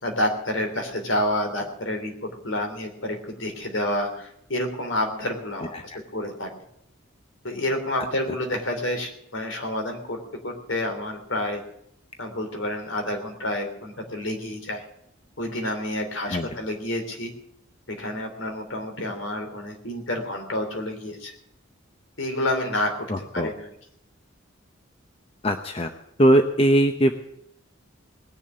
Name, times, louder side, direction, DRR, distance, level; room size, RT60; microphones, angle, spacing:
voice 1, 0.0-5.7 6.1-6.5 7.4-10.2 10.4-11.6 12.2-14.8 15.4-17.3 17.9-21.3 22.2-23.1 23.3-23.7, left 1 dB, 70° left, 4 dB, 3.1 m, -29 dB
voice 2, 5.7-6.0 8.0-8.1 16.3-16.5 23.1-23.5 25.4-25.9 26.2-27.2, right 1 dB, 30° left, 6 dB, 0.8 m, -21 dB
19.5 x 7.1 x 8.8 m, 0.76 s
head